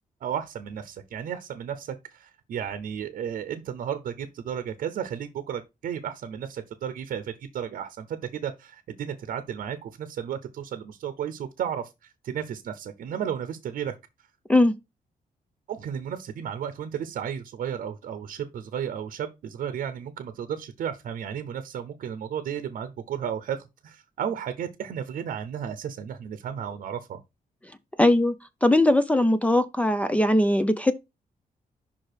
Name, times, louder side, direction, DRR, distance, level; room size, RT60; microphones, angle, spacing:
voice 1, 0.2-13.9 15.7-27.2, right 8 dB, 75° right, 0.8 m, -33 dB
voice 2, 28.0-28.3 28.6-30.9, left 1 dB, 10° left, 0.4 m, -20 dB
5.6 x 5.0 x 4.5 m
wide cardioid pair, 175°, 15 cm